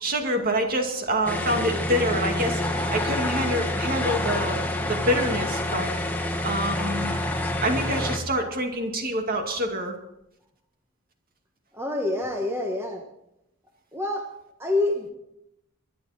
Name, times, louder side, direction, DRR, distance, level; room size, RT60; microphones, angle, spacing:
voice 1, 0.0-4.6 4.9-5.9 6.4-7.2 7.6-10.0, equal, 40° right, 4 dB, 2.3 m, -26 dB
sound 1, 1.3-8.2, left 1 dB, 10° left, 1.7 m, -27 dB
voice 2, 11.7-13.0 13.9-14.3 14.6-15.1, left 2 dB, 10° right, 2 dB, 1.4 m, -26 dB
23.5 x 11.0 x 4.3 m, 0.82 s
head